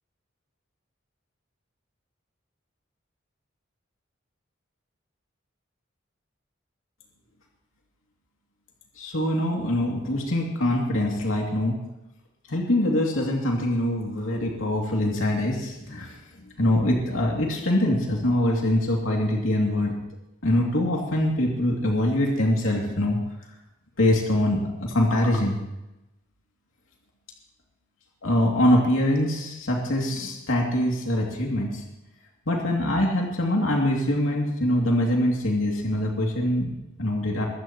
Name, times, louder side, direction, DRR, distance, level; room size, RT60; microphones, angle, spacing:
voice 1, 9.0-11.8 12.5-19.9 20.4-23.2 24.0-25.6 28.2-31.8 32.5-37.5, left 1 dB, 85° left, -1 dB, 2.7 m, -24 dB
23.0 x 15.5 x 3.1 m, 0.94 s
head